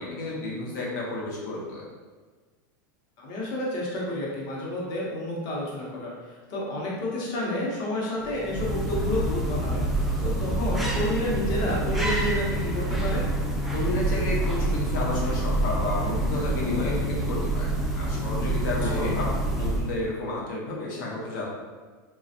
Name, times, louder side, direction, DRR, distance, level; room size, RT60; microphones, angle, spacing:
voice 1, 0.0-1.9 13.7-19.3 19.6-21.5, left 2 dB, 75° left, -3 dB, 0.9 m, -31 dB
voice 2, 3.2-13.3 18.8-19.1, left 1 dB, 45° left, -4 dB, 0.9 m, -30 dB
sound 1, 8.2-20.1, right 1 dB, ahead, 0.4 m, -27 dB
3.2 x 2.3 x 2.7 m, 1.4 s
supercardioid pair, 135°, 10 cm